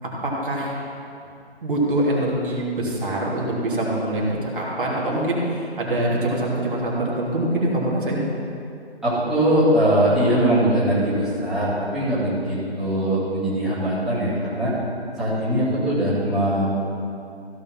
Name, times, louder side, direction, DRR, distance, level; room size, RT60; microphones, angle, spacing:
voice 1, 0.0-0.8 1.6-8.2, right 1 dB, 50° right, -4 dB, 2.9 m, -24 dB
voice 2, 9.0-14.7 15.2-16.6, right 1 dB, ahead, -15 dB, 2.4 m, -21 dB
15.5 x 5.4 x 5.8 m, 2.5 s
figure-of-eight pair, 150°, 33 cm